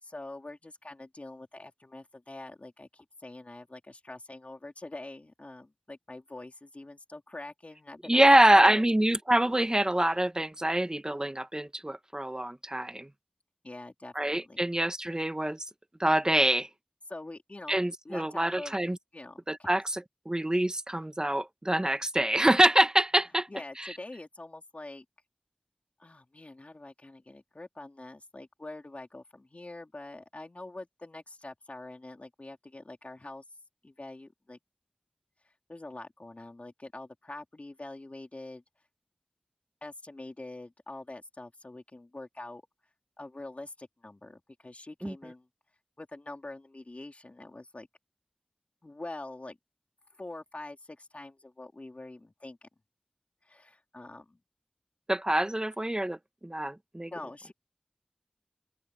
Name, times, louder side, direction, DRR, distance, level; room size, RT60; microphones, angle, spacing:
voice 1, 0.0-8.9 13.6-14.7 17.1-18.8 19.1-19.7 23.5-25.1 26.0-33.4 33.8-34.6 35.7-38.6 39.8-42.6 43.2-45.5 46.0-47.9 48.8-49.6 50.2-52.7 53.4-54.4 57.1-57.5, left 2 dB, 55° left, 3.7 m, -44 dB
voice 2, 8.1-13.1 14.1-15.6 16.0-16.7 17.7-19.0 19.5-20.0 20.3-23.5 23.8-23.9 45.0-45.1 55.1-56.2 56.4-57.1, right 1 dB, 25° right, 1.1 m, -25 dB
open air
wide cardioid pair, 50°, 3 cm